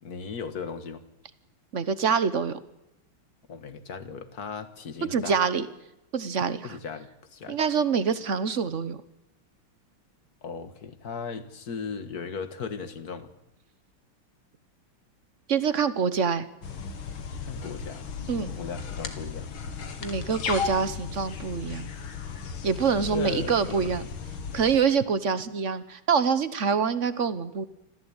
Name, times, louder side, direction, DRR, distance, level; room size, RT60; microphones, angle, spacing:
voice 1, 0.0-1.0 3.5-5.4 6.6-7.6 10.4-13.3 17.4-19.5 20.1-20.2 23.1-23.9, left 5 dB, 50° left, 11 dB, 1.9 m, -37 dB
voice 2, 1.7-2.6 5.1-5.7 6.1-6.7 7.5-9.0 15.5-16.5 18.3-18.5 20.0-21.9 22.6-24.0 24.5-27.6, right 6 dB, 45° right, 14 dB, 1.1 m, -25 dB
Pajaro Pucallpa, 16.6-24.8, left 6 dB, 75° left, 2.6 m, -35 dB
26.0 x 15.0 x 8.9 m, 0.90 s
omnidirectional pair, 2.3 m